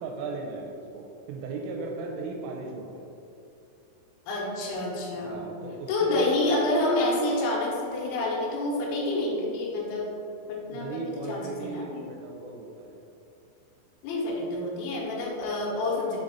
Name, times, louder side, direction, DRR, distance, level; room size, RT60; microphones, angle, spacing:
voice 1, 0.0-3.1 5.1-6.3 10.7-13.1, right 3 dB, 90° right, 0 dB, 3.3 m, -37 dB
voice 2, 4.3-5.5 5.9-10.1 10.5-12.1 14.0-16.2, left 2 dB, 75° left, -3 dB, 3.1 m, -28 dB
7.5 x 4.0 x 4.0 m, 2.7 s
omnidirectional pair, 5.8 m